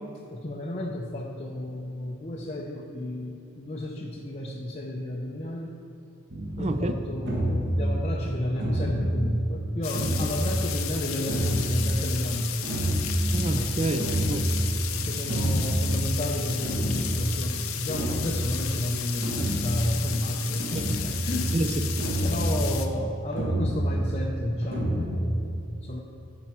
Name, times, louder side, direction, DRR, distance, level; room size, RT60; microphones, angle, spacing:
voice 1, 0.3-5.7 6.6-12.6 13.6-13.8 14.9-21.5 22.2-26.0, left 1 dB, 30° left, -1 dB, 0.5 m, -32 dB
sound 1, 6.3-25.2, right 1 dB, 50° right, 1.3 m, -29 dB
voice 2, 6.6-6.9 13.3-14.5 20.8-20.9 21.5-22.1, right 2 dB, 30° right, 9 dB, 0.4 m, -28 dB
sound 2, 9.8-22.9, left 10 dB, 75° left, 0.6 m, -34 dB
8.7 x 4.8 x 5.5 m, 2.8 s
head